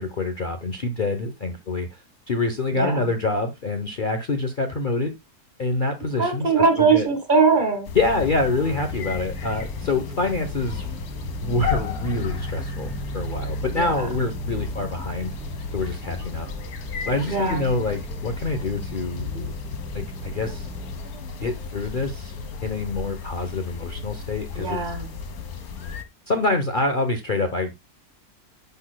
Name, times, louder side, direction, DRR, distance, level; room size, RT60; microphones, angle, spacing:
voice 1, 0.0-5.2 5.6-7.1 7.9-10.8 11.4-15.3 15.7-16.5 17.0-19.5 19.9-20.7 21.4-22.3 22.6-24.8 26.3-27.8, left 2 dB, 40° left, 0.9 m, -26 dB
voice 2, 2.7-3.1 6.2-7.9 13.7-14.1 17.3-17.7 24.6-25.1, right 4 dB, 30° right, 1.9 m, -21 dB
sound 1, 7.8-26.0, left 5 dB, 70° left, 1.6 m, -34 dB
sound 2, 8.0-21.0, right 2 dB, 5° right, 1.0 m, -37 dB
11.0 x 6.2 x 2.2 m
omnidirectional pair, 1.7 m